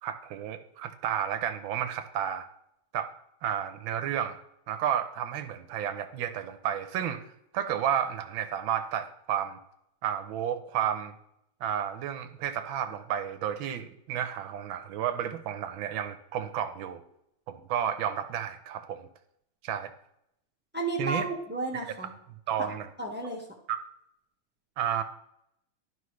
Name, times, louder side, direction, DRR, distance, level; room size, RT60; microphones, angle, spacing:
voice 1, 0.0-2.5 2.9-3.1 3.4-4.4 4.7-7.2 7.5-9.6 10.0-11.1 11.6-17.0 17.5-19.1 19.6-19.9 21.0-21.3 21.7-21.9 22.5-22.9 23.7-23.8 24.8-25.0, right 9 dB, 75° right, 9 dB, 1.4 m, -31 dB
voice 2, 20.7-22.1 23.0-23.4, right 2 dB, 10° right, 0 dB, 0.7 m, -32 dB
11.5 x 5.5 x 3.1 m, 0.77 s
omnidirectional pair, 2.4 m